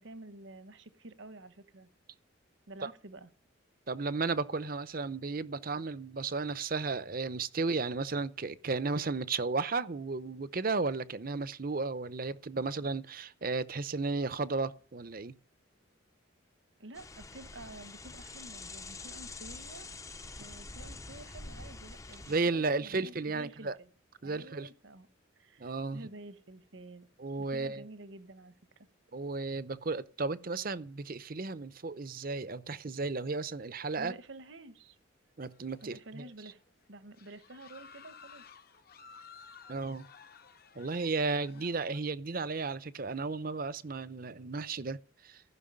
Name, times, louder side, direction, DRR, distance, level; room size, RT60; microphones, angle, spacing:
voice 1, 0.0-1.9 2.7-3.3 16.8-19.9 20.4-23.9 24.2-25.1 25.3-27.1 27.4-28.9 34.0-35.0 35.8-36.6 36.9-38.5 41.5-41.6, right 2 dB, 70° right, 1.1 m, -50 dB
voice 2, 3.9-15.3 22.3-23.8 24.2-24.7 25.6-26.0 27.2-27.8 29.1-34.1 35.4-36.2 39.7-40.1 40.7-45.4, right 3 dB, 45° right, 0.7 m, -34 dB
sound 1, 16.9-22.4, left 3 dB, 15° left, 0.6 m, -46 dB
sound 2, 35.4-36.3 36.6-36.7 37.1-42.0, left 6 dB, 50° left, 0.9 m, -55 dB
15.5 x 6.0 x 9.7 m
head